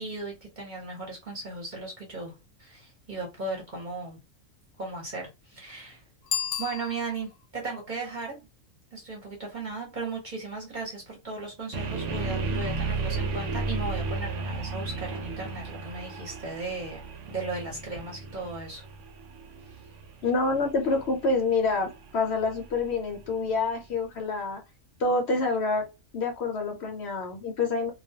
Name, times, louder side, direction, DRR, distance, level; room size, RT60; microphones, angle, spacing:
voice 1, 0.0-4.2 4.8-6.0 6.6-8.5 8.9-17.0 17.3-18.8, right 3 dB, 40° right, 0.8 m, -36 dB
Bicycle bell, 6.2-7.5, left 9 dB, 85° left, 1.1 m, -33 dB
sound 1, 11.7-23.7, right 3 dB, 70° right, 0.9 m, -34 dB
voice 2, 20.2-24.6 25.0-25.8 26.1-27.9, left 3 dB, 60° left, 0.8 m, -27 dB
2.3 x 2.2 x 2.7 m
omnidirectional pair, 1.4 m